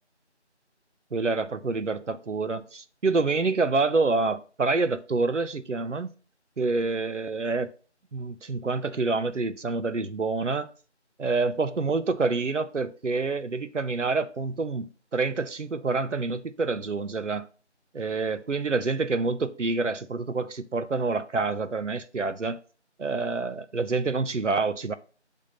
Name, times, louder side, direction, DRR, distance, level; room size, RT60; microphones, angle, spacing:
voice 1, 1.1-6.1 6.6-7.7 8.1-10.7 11.2-17.5 17.9-22.6 23.0-24.9, right 3 dB, 90° right, 0.7 m, -27 dB
6.7 x 3.6 x 5.8 m
figure-of-eight pair, 175°, 35 cm